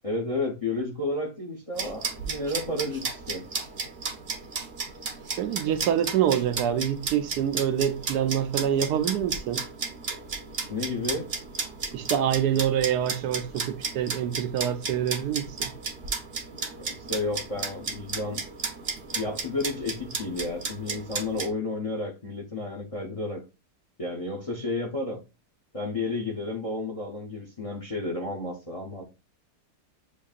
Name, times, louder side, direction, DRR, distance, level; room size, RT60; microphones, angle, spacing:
voice 1, 0.0-3.5 10.7-11.3 16.8-18.4 19.1-23.4 24.0-25.2 25.7-29.0, left 2 dB, 30° left, 0.6 m, -32 dB
sound 1, 1.7-21.5, right 4 dB, 50° right, 0.9 m, -34 dB
voice 2, 5.4-9.6 11.9-15.7, right 9 dB, 80° right, 1.2 m, -26 dB
7.3 x 2.7 x 2.4 m
omnidirectional pair, 1.7 m